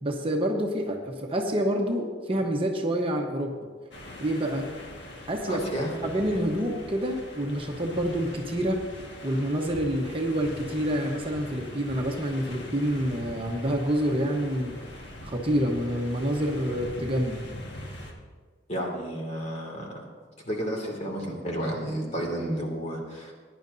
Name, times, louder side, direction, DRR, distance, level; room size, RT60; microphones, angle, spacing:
voice 1, 0.0-3.5 4.2-4.7 5.3-5.6 6.0-8.8 9.2-14.7 15.2-17.5, equal, 30° right, 1 dB, 1.0 m, -27 dB
sound 1, 3.9-18.1, left 1 dB, 65° left, 1.6 m, -42 dB
voice 2, 5.5-5.9 18.7-20.0 20.4-23.3, equal, 35° left, 0 dB, 2.2 m, -31 dB
20.0 x 10.0 x 2.7 m, 1.5 s
head